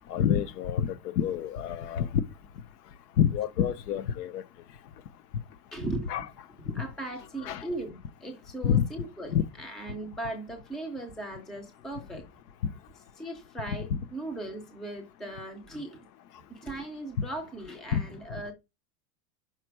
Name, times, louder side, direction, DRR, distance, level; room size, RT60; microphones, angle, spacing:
voice 1, 0.1-2.1 3.2-4.4 6.1-6.3 7.4-7.7 8.6-8.8 9.3-9.4 13.7-13.8 17.9-18.0, left 9 dB, 75° left, 0.7 m, -27 dB
voice 2, 5.7-6.1 6.7-12.2 13.2-16.0 16.5-18.5, right 2 dB, ahead, 0.3 m, -38 dB
5.8 x 4.3 x 4.6 m
supercardioid pair, 150°, 48 cm